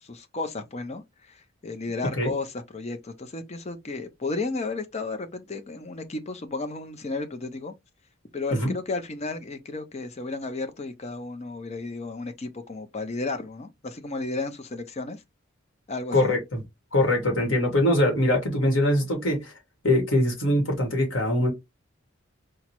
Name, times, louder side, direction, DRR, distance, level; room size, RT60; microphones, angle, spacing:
voice 1, 0.0-7.7 8.3-15.2 15.9-16.4, left 3 dB, 30° left, 0.6 m, -33 dB
voice 2, 16.1-16.6 16.9-19.5 19.8-21.5, left 1 dB, 65° left, 1.5 m, -22 dB
4.8 x 2.0 x 2.9 m
head